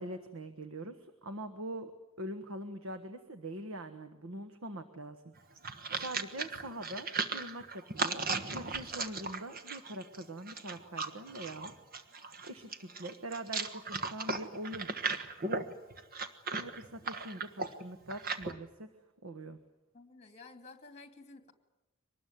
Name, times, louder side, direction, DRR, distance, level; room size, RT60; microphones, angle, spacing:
voice 1, 0.0-1.9 2.2-5.3 5.9-11.7 12.1-14.9 15.4-15.7 16.5-18.9 19.2-19.6, right 1 dB, 70° right, 8 dB, 1.4 m, -43 dB
sound 1, 5.4-18.5, right 4 dB, 45° right, 1.5 m, -37 dB
voice 2, 19.9-21.5, left 3 dB, 30° left, 7 dB, 2.7 m, -52 dB
24.0 x 20.0 x 9.3 m, 1.0 s
head